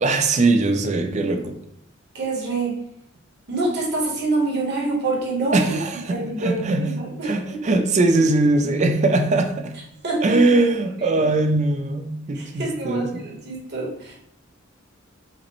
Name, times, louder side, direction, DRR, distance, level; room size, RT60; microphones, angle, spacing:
voice 1, 0.0-1.6 5.5-9.7 10.2-13.1, right 2 dB, 35° right, 7 dB, 0.4 m, -21 dB
voice 2, 2.1-2.8 3.5-5.7 6.1-7.7 10.0-10.4 11.0-11.3 12.3-14.1, right 2 dB, 55° right, -3 dB, 1.1 m, -26 dB
4.9 x 2.1 x 2.9 m, 0.76 s
head